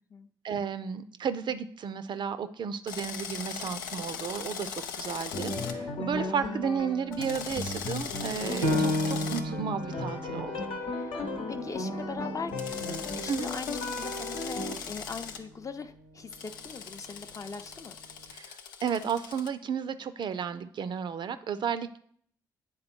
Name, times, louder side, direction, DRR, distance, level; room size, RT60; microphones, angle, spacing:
voice 1, 0.4-10.7 13.3-13.5 18.3-22.0, right 7 dB, 50° right, 12 dB, 0.5 m, -33 dB
Drill, 2.9-5.8 7.1-9.4 12.6-15.4 16.3-19.5, left 7 dB, 85° left, 0.4 m, -39 dB
sound 1, 5.3-14.7, left 2 dB, 60° left, 0.9 m, -35 dB
Piano, 8.6-13.8 14.3-14.4 15.0-15.5, left 1 dB, 90° right, 0.7 m, -34 dB
voice 2, 11.5-18.0, left 5 dB, 30° left, 8 dB, 0.6 m, -41 dB
8.8 x 3.7 x 4.4 m, 0.62 s
hypercardioid pair, 45°, 10 cm